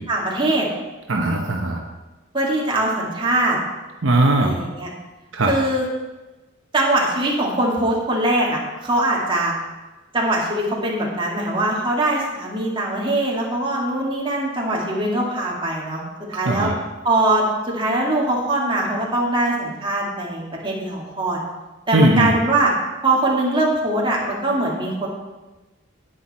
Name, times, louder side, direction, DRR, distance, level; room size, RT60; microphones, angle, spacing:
voice 1, 0.1-0.7 2.3-3.6 4.4-4.9 5.5-5.8 6.7-9.5 10.1-16.0 16.3-16.7 17.0-21.4 21.9-22.7 23.0-25.1, right 1 dB, 25° right, -3 dB, 2.3 m, -22 dB
voice 2, 1.1-1.8 4.0-4.6 5.3-5.5 16.3-16.7 21.9-22.3, right 1 dB, 70° right, 1 dB, 1.0 m, -19 dB
10.0 x 9.5 x 4.3 m, 1.1 s
head